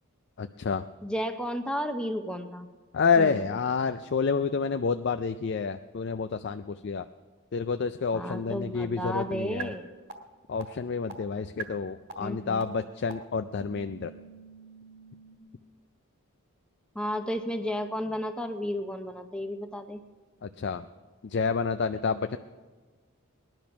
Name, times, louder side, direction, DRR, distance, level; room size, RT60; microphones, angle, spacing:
voice 1, 0.4-0.8 2.9-7.0 7.5-9.7 10.5-14.1 20.6-20.8 21.3-22.4, left 5 dB, 50° left, 9 dB, 0.4 m, -28 dB
voice 2, 1.0-2.7 3.2-3.5 8.1-9.9 12.2-12.6 16.9-20.0, equal, 5° left, 6 dB, 0.6 m, -33 dB
sound 1, 9.6-9.7 10.1-10.2 10.6-10.7 11.1-11.2 11.6-11.7 12.1-12.2 12.6-12.7 13.1-13.2 13.6-15.4, right 7 dB, 50° right, 1.7 m, -42 dB
19.5 x 10.5 x 5.9 m, 1.4 s
head